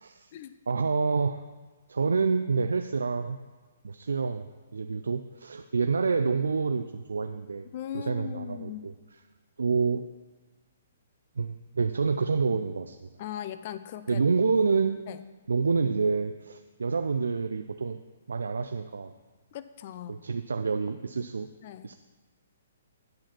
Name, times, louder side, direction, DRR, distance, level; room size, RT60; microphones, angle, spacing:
voice 1, 0.7-1.4 1.9-3.4 3.8-7.7 7.9-8.9 9.6-10.1 11.4-13.0 14.1-15.0 15.5-18.0 18.3-19.1 20.1-21.5 21.8-22.0, right 4 dB, 85° right, 8 dB, 0.4 m, -28 dB
voice 2, 7.7-8.9 13.2-14.2 15.1-15.2 19.5-20.2 21.6-21.9, left 11 dB, 45° left, 13 dB, 0.4 m, -39 dB
10.5 x 4.8 x 6.0 m, 1.3 s
hypercardioid pair, 140°, 0 cm